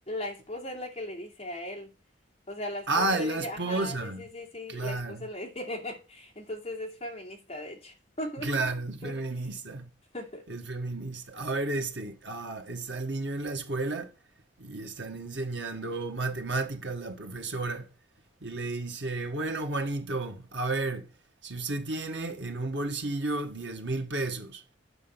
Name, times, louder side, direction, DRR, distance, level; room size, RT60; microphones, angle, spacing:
voice 1, 0.1-1.9 2.5-8.5 9.0-9.1 10.1-10.4, left 1 dB, 30° left, 2.6 m, -38 dB
voice 2, 2.9-4.2 4.7-5.3 8.4-9.9 10.5-14.1 14.6-17.9 18.4-21.1 21.4-24.6, right 2 dB, 75° right, 1.7 m, -32 dB
9.9 x 6.7 x 5.8 m
head